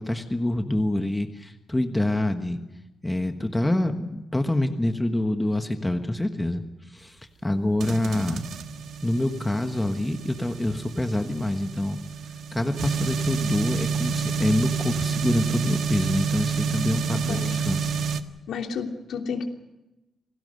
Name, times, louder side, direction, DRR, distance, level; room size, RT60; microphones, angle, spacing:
voice 1, 0.0-2.6 3.0-6.6 6.9-7.2 7.4-8.4 9.0-12.0 12.5-17.9, left 1 dB, 10° left, 6 dB, 1.3 m, -26 dB
sound 1, 7.8-18.2, right 6 dB, 75° right, 1.5 m, -29 dB
voice 2, 17.1-17.6 18.5-19.5, left 6 dB, 80° left, 3 dB, 3.1 m, -31 dB
27.5 x 19.0 x 6.5 m, 0.99 s
wide cardioid pair, 170°, 0 cm